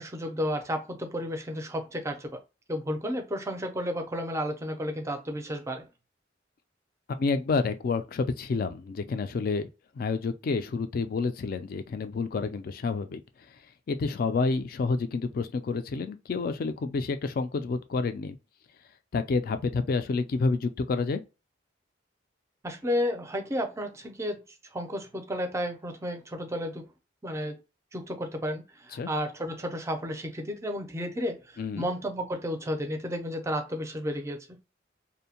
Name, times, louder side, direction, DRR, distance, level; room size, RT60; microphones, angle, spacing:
voice 1, 0.0-2.4 2.7-5.9 22.6-24.4 24.7-26.8 27.2-27.6 27.9-34.6, equal, 15° right, 0.4 m, -32 dB
voice 2, 7.2-9.7 10.0-13.2 13.9-18.4 19.1-21.2 28.9-29.1 31.6-31.9, left 4 dB, 50° left, 0.3 m, -29 dB
2.6 x 2.0 x 2.8 m
head